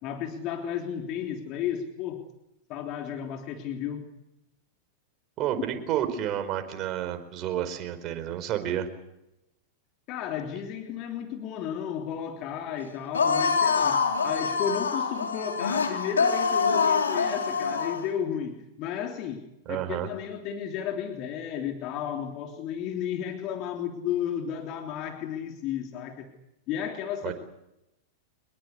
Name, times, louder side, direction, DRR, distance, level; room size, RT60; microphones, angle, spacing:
voice 1, 0.0-2.2 2.7-4.0 10.1-19.4 19.7-26.3 26.7-27.3, left 9 dB, 40° left, 4 dB, 3.3 m, -33 dB
voice 2, 5.4-8.9 19.6-20.1 27.2-27.3, right 11 dB, 35° right, 9 dB, 4.7 m, -30 dB
sound 1, 13.1-18.0, left 5 dB, 80° left, 3.3 m, -25 dB
25.5 x 21.5 x 8.3 m, 0.88 s
figure-of-eight pair, 95°, 0 cm